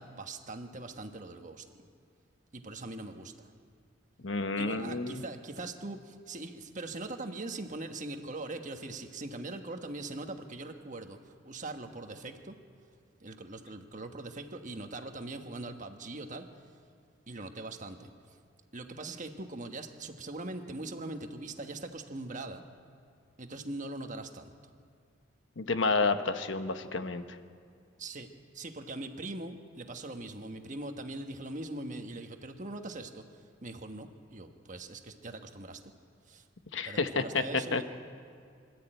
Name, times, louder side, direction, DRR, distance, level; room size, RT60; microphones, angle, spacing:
voice 1, 0.0-1.7 2.5-3.5 4.6-12.5 13.2-16.4 17.3-18.1 18.7-22.6 23.4-24.5 28.0-28.3 28.5-33.2 33.6-35.8 36.3-36.4 36.8-37.8, right 2 dB, 40° right, 5 dB, 1.3 m, -41 dB
voice 2, 4.2-5.2 25.6-27.2 36.7-37.4 37.7-37.8, left 3 dB, 75° left, 9 dB, 1.1 m, -30 dB
25.0 x 13.0 x 9.0 m, 2.3 s
head